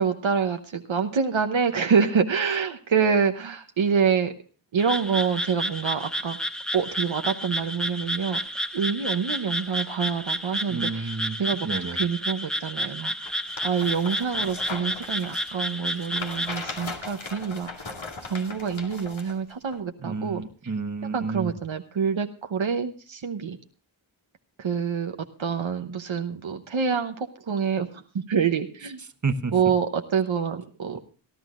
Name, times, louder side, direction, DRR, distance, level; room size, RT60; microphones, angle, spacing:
voice 1, 0.0-4.3 4.7-6.4 6.7-8.4 8.7-13.3 13.6-17.9 18.2-20.4 21.1-23.6 24.6-29.0 29.5-31.0, right 6 dB, 70° right, 6 dB, 1.0 m, -26 dB
Frog, 4.8-16.5, equal, ahead, 1.0 m, -31 dB
voice 2, 10.7-12.0 20.0-21.5 29.2-29.6 30.9-31.0, right 4 dB, 35° right, 8 dB, 1.3 m, -30 dB
sound 1, 13.2-19.3 19.7-19.8, left 3 dB, 70° left, 2.4 m, -38 dB
26.5 x 11.0 x 2.5 m, 0.39 s
cardioid pair, 40°, 49 cm